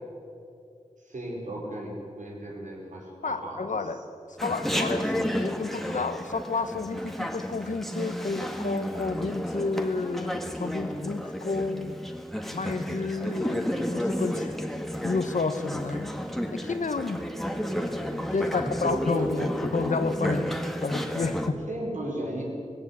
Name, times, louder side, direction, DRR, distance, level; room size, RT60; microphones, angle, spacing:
voice 1, 1.0-4.0 18.5-19.6 19.9-20.1 21.7-22.4, right 1 dB, 80° right, -2 dB, 5.1 m, -35 dB
voice 2, 3.2-4.0 4.3-11.9 12.5-14.6 15.0-16.1 16.5-17.2 18.3-20.5 20.8-21.6, left 3 dB, 80° left, 9 dB, 1.3 m, -30 dB
Chatter, 4.4-21.5, equal, ahead, 1.8 m, -32 dB
18.5 x 16.0 x 8.5 m, 2.5 s
wide cardioid pair, 50°, 13 cm